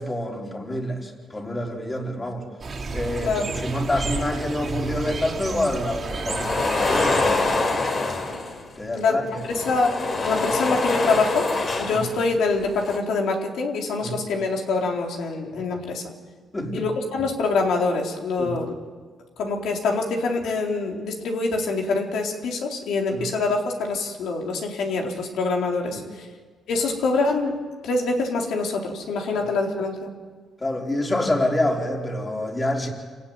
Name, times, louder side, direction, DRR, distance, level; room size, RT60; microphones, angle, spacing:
voice 1, 0.0-2.4 2.9-7.8 8.8-9.5 11.9-12.1 14.0-14.2 16.5-16.8 18.4-18.5 23.1-23.3 25.9-26.0 30.6-32.9, left 1 dB, 20° left, 1 dB, 4.5 m, -27 dB
sound 1, 2.6-7.9, right 3 dB, 40° right, 3.1 m, -32 dB
sound 2, 6.1-8.7 9.4-12.2 12.6-13.0, left 3 dB, 40° left, 3.9 m, -25 dB
voice 2, 8.9-9.4 9.7-9.9 10.2-11.5 11.8-16.0 16.7-18.7 19.4-26.3 26.7-27.6 27.8-30.1, left 3 dB, 75° left, 1 dB, 4.0 m, -25 dB
27.5 x 15.5 x 9.7 m, 1.5 s
cardioid pair, 90°, 0 cm